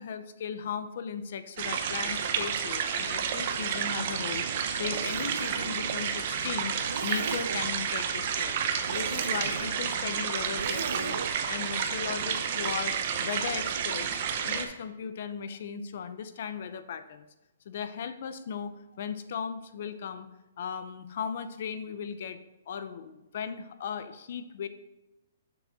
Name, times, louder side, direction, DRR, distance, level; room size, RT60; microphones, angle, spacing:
voice 1, 0.0-4.4 4.7-8.5 8.9-17.3 17.7-20.3 20.6-22.4 22.7-24.7, left 7 dB, 50° left, 11 dB, 0.6 m, -37 dB
sound 1, 1.6-14.7, right 7 dB, 40° right, 0.7 m, -31 dB
Zipper (clothing), 3.6-11.5, right 5 dB, 85° right, 0.4 m, -40 dB
7.0 x 5.8 x 4.2 m, 1.0 s
hypercardioid pair, 170°, 0 cm